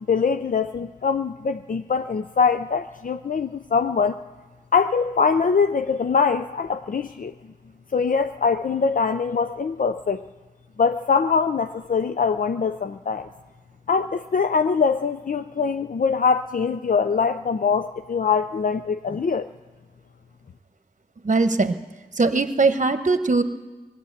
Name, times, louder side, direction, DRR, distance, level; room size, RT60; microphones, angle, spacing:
voice 1, 0.1-4.2 4.7-7.3 7.9-10.3 10.8-13.3 13.9-19.5, left 5 dB, 55° left, 9 dB, 0.5 m, -23 dB
voice 2, 21.2-21.8 22.2-23.4, right 3 dB, 50° right, 10 dB, 1.0 m, -20 dB
19.5 x 9.2 x 8.0 m, 1.3 s
cardioid pair, 45°, 16 cm